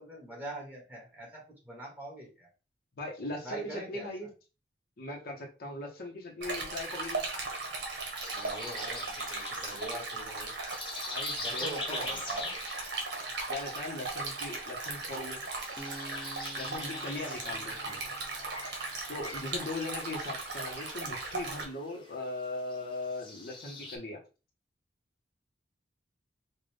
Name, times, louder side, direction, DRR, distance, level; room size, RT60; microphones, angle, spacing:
voice 1, 0.0-2.5 3.4-4.1 8.3-10.5 11.4-12.5 17.0-17.2 19.6-19.7, right 1 dB, 10° right, -2 dB, 1.6 m, -43 dB
voice 2, 3.0-4.3 5.0-7.2 11.1-12.2 13.5-15.4 16.6-18.0 19.1-24.2, left 2 dB, 55° left, 0 dB, 1.0 m, -39 dB
Stream, 6.4-21.6, right 3 dB, 70° right, 1.4 m, -37 dB
sound 1, 8.2-24.0, left 3 dB, 25° left, 1.0 m, -44 dB
Acoustic guitar, 15.8-19.0, right 1 dB, 5° left, 0.6 m, -49 dB
5.3 x 2.5 x 3.4 m, 0.33 s
head